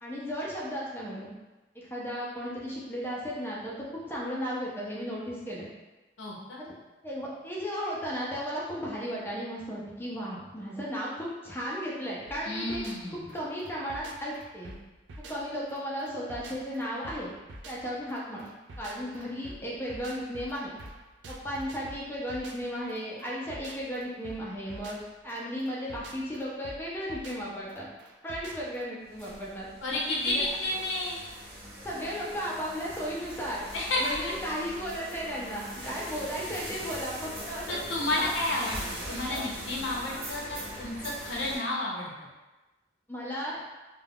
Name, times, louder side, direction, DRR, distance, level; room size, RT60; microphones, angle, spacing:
voice 1, 0.0-1.3 1.7-5.7 7.0-12.8 13.1-14.7 15.2-17.3 17.6-18.4 18.8-20.8 21.3-27.9 28.2-29.7 30.2-30.5 31.8-33.7 34.0-37.8 43.1-43.6, equal, 10° left, -6 dB, 0.5 m, -35 dB
voice 2, 6.2-6.6 12.4-13.3 29.8-31.2 33.7-34.3 37.7-42.1, left 1 dB, 90° left, -3 dB, 0.6 m, -31 dB
sound 1, 12.3-28.9, right 1 dB, 75° right, 0.3 m, -47 dB
sound 2, 29.0-41.6, right 1 dB, 50° right, 0.9 m, -41 dB
2.3 x 2.2 x 3.4 m, 1.1 s
head